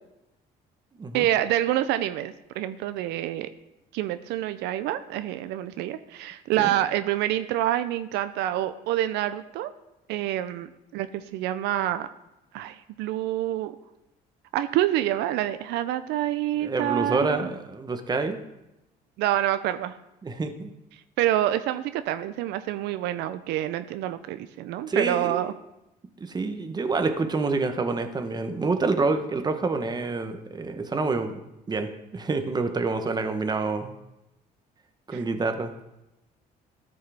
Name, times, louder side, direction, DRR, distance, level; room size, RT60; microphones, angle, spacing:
voice 1, 1.1-3.5 3.9-9.7 10.1-12.1 12.5-13.8 14.5-17.5 19.2-20.0 21.2-25.5 35.1-35.2, right 13 dB, 85° right, 11 dB, 0.5 m, -27 dB
voice 2, 16.6-18.4 20.2-20.7 24.9-25.4 26.2-31.4 31.7-33.9 35.1-35.7, right 3 dB, 25° right, 7 dB, 0.9 m, -27 dB
13.0 x 5.5 x 3.4 m, 0.92 s
cardioid pair, 110°, 17 cm